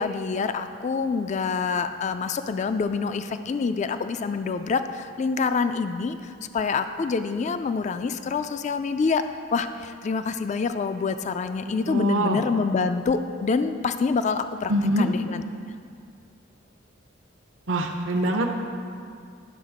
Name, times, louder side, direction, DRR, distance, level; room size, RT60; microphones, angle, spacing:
voice 1, 0.0-9.2 9.5-14.7 15.0-15.4, left 4 dB, 40° left, 9 dB, 0.3 m, -26 dB
voice 2, 11.9-12.4 14.7-15.1 17.7-18.5, right 1 dB, 80° right, 2 dB, 0.8 m, -23 dB
11.0 x 6.3 x 4.9 m, 2.3 s
head